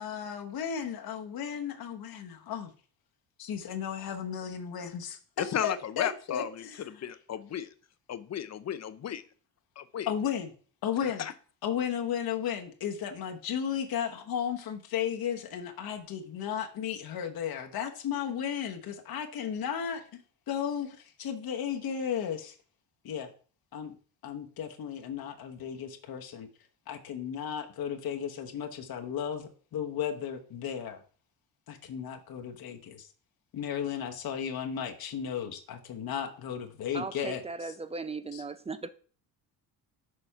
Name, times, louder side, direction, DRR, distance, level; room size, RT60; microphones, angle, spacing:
voice 1, 0.0-2.7 3.4-6.8 10.1-10.5 10.8-11.2 11.6-20.2 20.5-22.5 23.0-23.3 23.7-24.0 24.2-26.5 26.9-31.0 31.7-33.1 33.5-37.8 38.3-38.4, left 8 dB, 60° left, 1.1 m, -34 dB
voice 2, 5.4-7.7 8.1-9.2 9.8-10.1 11.0-11.3, left 9 dB, 40° left, 0.7 m, -34 dB
voice 3, 36.9-38.9, right 4 dB, 15° right, 0.4 m, -37 dB
6.5 x 4.3 x 5.7 m
cardioid pair, 100°, 41 cm